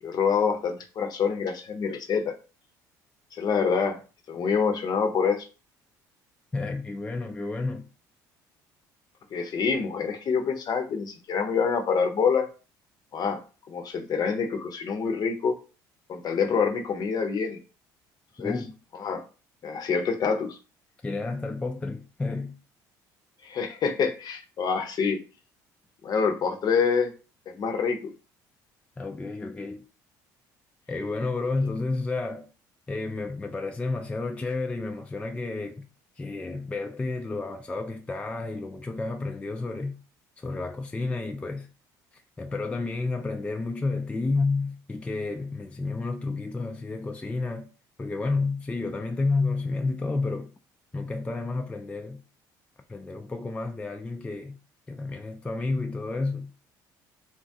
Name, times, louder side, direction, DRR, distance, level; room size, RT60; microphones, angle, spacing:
voice 1, 0.0-2.4 3.3-4.0 4.3-5.5 9.3-12.5 13.1-13.4 13.7-15.5 16.1-17.6 18.4-18.6 19.0-19.2 19.6-20.6 23.4-25.2 26.0-27.1 27.5-28.1, left 6 dB, 50° left, 0.6 m, -26 dB
voice 2, 6.5-7.9 18.4-18.7 21.0-22.6 29.0-29.8 30.9-32.5 32.9-35.9 36.2-40.0 40.4-41.7 42.4-47.7 48.0-50.5 50.9-52.2 52.9-54.6 54.9-56.5, left 3 dB, 15° left, 0.3 m, -31 dB
3.0 x 2.3 x 2.7 m
supercardioid pair, 75°, 9 cm